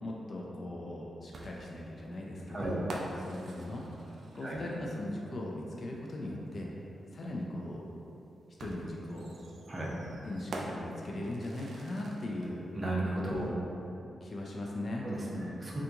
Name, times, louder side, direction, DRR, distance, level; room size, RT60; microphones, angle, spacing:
voice 1, 0.0-2.9 3.2-3.9 4.3-6.7 7.1-7.8 8.6-9.3 10.2-12.6 13.4-13.6 14.2-15.1 15.3-15.6, left 1 dB, 50° left, -2 dB, 0.4 m, -39 dB
sound 1, 1.3-5.0 6.5-6.6 8.6-12.5, right 2 dB, 70° right, 0.3 m, -45 dB
voice 2, 9.7-10.0 12.7-13.6 15.0-15.2 15.6-15.8, right 1 dB, 30° right, -5 dB, 0.6 m, -34 dB
2.8 x 2.5 x 3.4 m, 2.8 s
cardioid pair, 75°, 0 cm